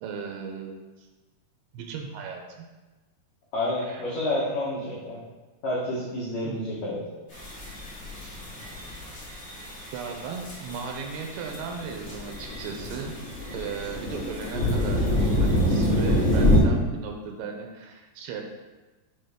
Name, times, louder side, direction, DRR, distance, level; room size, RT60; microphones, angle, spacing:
voice 1, 0.0-1.1 1.7-2.7 3.8-4.0 6.4-6.6 9.9-13.2 13.5-18.4, right 6 dB, 80° right, 3 dB, 2.5 m, -36 dB
voice 2, 3.5-5.2 5.6-7.0, left 1 dB, 85° left, -7 dB, 1.5 m, -29 dB
sound 1, 7.3-16.6, left 1 dB, 60° left, 0.6 m, -27 dB
7.8 x 3.4 x 3.5 m, 1.2 s
omnidirectional pair, 4.5 m